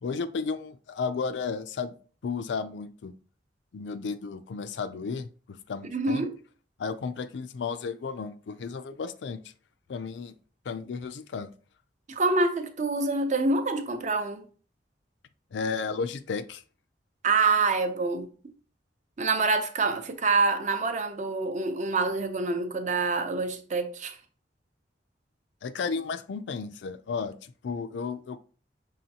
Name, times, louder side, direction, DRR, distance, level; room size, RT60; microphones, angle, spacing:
voice 1, 0.0-1.9 2.2-3.1 3.7-6.2 6.8-9.4 9.9-10.3 10.7-11.5 15.5-16.6 25.6-28.4, left 5 dB, 75° left, 0.4 m, -33 dB
voice 2, 5.9-6.3 12.1-14.4 17.2-18.3 19.2-24.2, right 3 dB, 45° right, 0.6 m, -26 dB
5.6 x 3.0 x 2.8 m
head